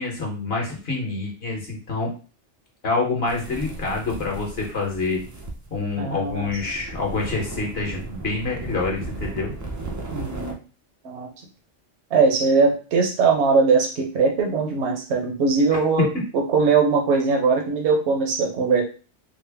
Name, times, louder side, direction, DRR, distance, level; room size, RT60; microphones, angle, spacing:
voice 1, 0.0-2.1 2.8-5.2 5.7-9.5, left 3 dB, 55° left, -1 dB, 1.2 m, -27 dB
sound 1, 3.3-10.5, right 2 dB, 30° right, 0.3 m, -36 dB
voice 2, 6.0-6.5 10.1-10.6 11.0-11.3 12.1-16.1 16.3-18.8, right 4 dB, 65° right, 2 dB, 1.1 m, -20 dB
3.8 x 2.0 x 3.3 m, 0.35 s
omnidirectional pair, 1.3 m